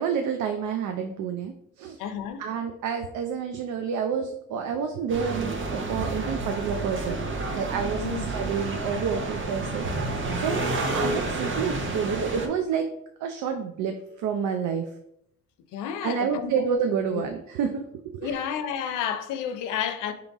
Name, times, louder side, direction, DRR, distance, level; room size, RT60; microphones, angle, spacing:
voice 1, 0.0-2.0 2.4-9.9 10.3-10.6 10.9-12.9 13.2-14.9 16.0-17.8 18.1-18.4, right 6 dB, 75° right, 0.5 m, -29 dB
voice 2, 2.0-2.5 8.0-8.3 15.7-16.5 17.1-17.3 18.2-20.1, left 8 dB, 85° left, 0.5 m, -31 dB
sound 1, 5.1-12.5, right 2 dB, 40° right, 0.7 m, -30 dB
3.8 x 2.9 x 3.5 m
cardioid pair, 90°, 30 cm